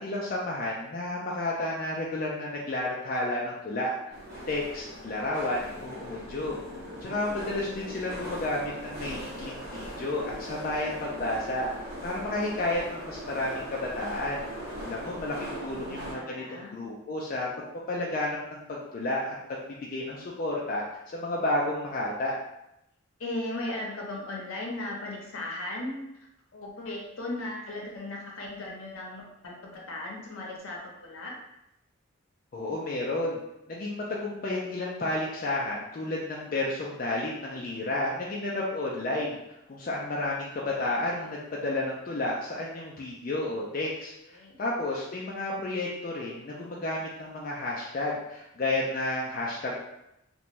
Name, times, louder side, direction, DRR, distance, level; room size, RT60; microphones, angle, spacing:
voice 1, 0.0-3.9 4.5-6.6 7.0-14.5 14.9-17.5 17.9-20.8 21.1-22.3 32.5-33.4 33.7-39.4 39.7-49.8, left 2 dB, 40° left, -3 dB, 0.3 m, -31 dB
sound 1, 4.1-16.1, equal, 50° right, 0.7 m, -40 dB
voice 2, 15.8-16.8 23.2-26.1 26.5-31.3 44.3-44.6, left 1 dB, 80° left, -2 dB, 0.7 m, -37 dB
2.5 x 2.2 x 3.0 m, 0.85 s
head